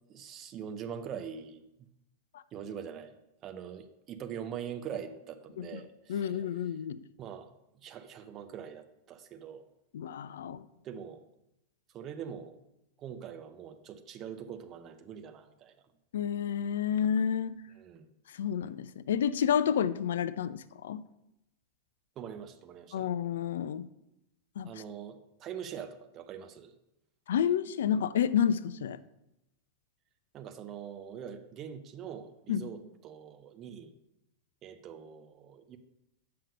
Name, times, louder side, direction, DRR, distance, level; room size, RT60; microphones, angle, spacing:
voice 1, 0.1-1.6 2.5-3.1 3.4-6.7 7.2-7.5 7.8-9.6 10.8-11.2 11.9-12.5 13.0-15.7 17.8-18.1 22.2-23.1 24.6-26.7 30.3-33.9 34.6-35.8, right 8 dB, 30° right, 8 dB, 0.7 m, -43 dB
voice 2, 6.1-7.0 9.9-10.6 16.1-17.6 18.3-21.0 22.9-23.9 24.6-24.7 27.3-29.0 32.5-32.7, left 8 dB, 60° left, 16 dB, 0.3 m, -30 dB
6.6 x 5.6 x 5.4 m, 0.86 s
figure-of-eight pair, 90°, 0 cm